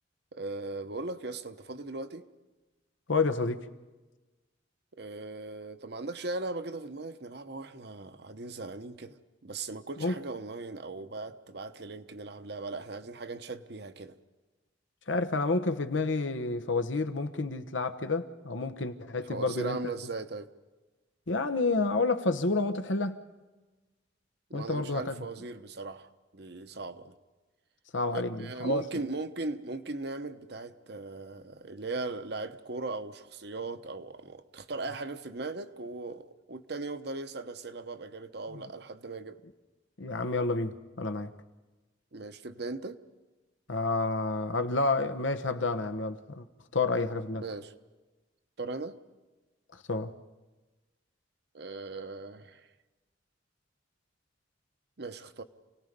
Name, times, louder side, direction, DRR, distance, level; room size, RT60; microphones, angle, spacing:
voice 1, 0.3-2.2 5.0-9.2 9.4-14.2 19.2-20.5 24.5-27.2 28.1-39.4 42.1-43.0 47.4-47.7 48.6-49.0 51.5-52.7 55.0-55.4, right 3 dB, 60° right, 9 dB, 1.0 m, -38 dB
voice 2, 3.1-3.6 10.0-10.1 15.1-19.8 21.3-23.2 24.5-25.1 27.9-28.8 38.5-38.7 40.0-41.3 43.7-46.4 46.7-47.4 49.9-50.1, left 3 dB, 85° left, 8 dB, 1.2 m, -29 dB
28.5 x 18.0 x 5.3 m, 1.2 s
head